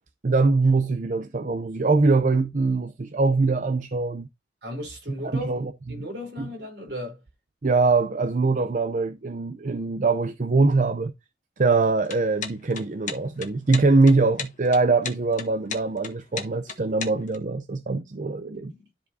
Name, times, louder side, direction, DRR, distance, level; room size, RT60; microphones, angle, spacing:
voice 1, 0.2-4.3 5.2-6.0 7.6-11.1 11.6-18.7, right 3 dB, 45° right, 0.6 m, -23 dB
voice 2, 4.6-5.6 5.9-7.2 18.8-18.9, left 1 dB, 65° right, 3.8 m, -35 dB
sound 1, 12.0-17.4, left 7 dB, 45° left, 1.4 m, -35 dB
13.0 x 4.7 x 2.7 m
head